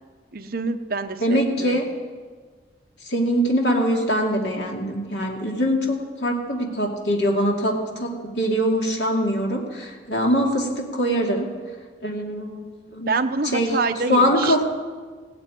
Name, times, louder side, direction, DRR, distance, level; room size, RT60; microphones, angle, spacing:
voice 1, 0.3-1.8 13.1-14.6, right 3 dB, 55° right, 8 dB, 0.8 m, -26 dB
voice 2, 1.2-1.9 3.0-11.5 12.0-12.6 12.9-13.1 13.5-13.7 14.1-14.6, equal, 75° left, 0 dB, 2.5 m, -23 dB
16.5 x 8.7 x 9.0 m, 1.5 s
head